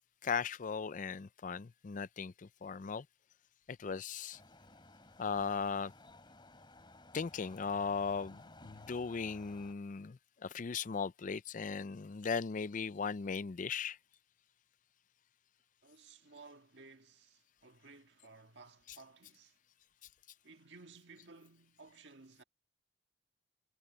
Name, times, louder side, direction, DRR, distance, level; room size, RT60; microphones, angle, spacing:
voice 1, 0.2-3.0 3.8-4.4 5.2-5.9 7.1-14.0, left 5 dB, 45° left, 0.5 m, -38 dB
sound 1, 4.3-9.7, left 2 dB, 25° left, 7.2 m, -57 dB
voice 2, 15.8-19.6 20.4-22.4, right 4 dB, 70° right, 1.7 m, -57 dB
head